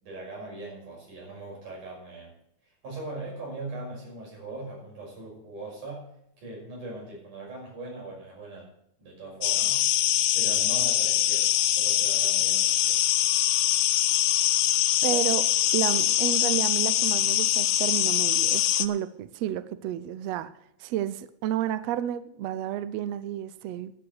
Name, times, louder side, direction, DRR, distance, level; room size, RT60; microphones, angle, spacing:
voice 1, 0.0-2.3 2.8-6.1 6.4-8.7 9.0-9.8 10.3-13.0, right 2 dB, 90° right, -3 dB, 7.4 m, -40 dB
sound 1, 9.4-18.9, left 13 dB, 80° left, 1.4 m, -23 dB
voice 2, 15.0-15.5 15.7-20.5 20.8-23.9, right 11 dB, 75° right, 14 dB, 1.6 m, -31 dB
11.0 x 8.9 x 7.9 m, 0.75 s
omnidirectional pair, 3.5 m